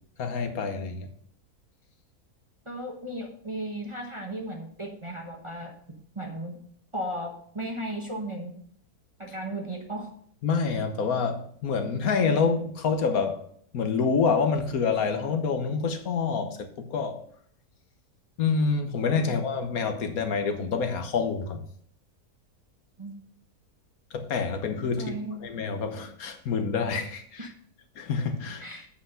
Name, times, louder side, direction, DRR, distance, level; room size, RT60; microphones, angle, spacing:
voice 1, 0.2-1.1 10.4-13.4 13.7-17.2 18.4-21.6 24.1-25.1 25.4-27.5 28.0-28.7, left 5 dB, 70° left, 1.4 m, -27 dB
voice 2, 2.7-5.7 6.1-6.6 6.9-8.5 9.2-10.1 19.2-19.4 23.0-23.1 25.0-25.5 27.4-27.5 28.6-28.9, right 1 dB, 20° right, 1.0 m, -35 dB
8.4 x 5.7 x 5.6 m
omnidirectional pair, 1.6 m